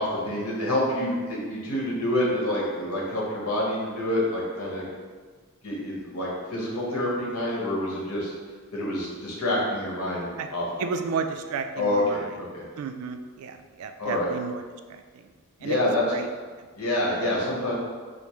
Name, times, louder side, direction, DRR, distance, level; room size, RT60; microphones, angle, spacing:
voice 1, 0.0-4.9 5.6-8.3 8.7-10.6 11.7-12.6 14.0-14.3 15.6-16.0 16.8-17.7, left 1 dB, 80° left, -4 dB, 1.0 m, -27 dB
voice 2, 10.8-12.3 12.8-14.6 14.9-15.2 15.6-16.3, right 5 dB, 70° right, 7 dB, 0.3 m, -32 dB
5.1 x 2.0 x 3.0 m, 1.5 s
head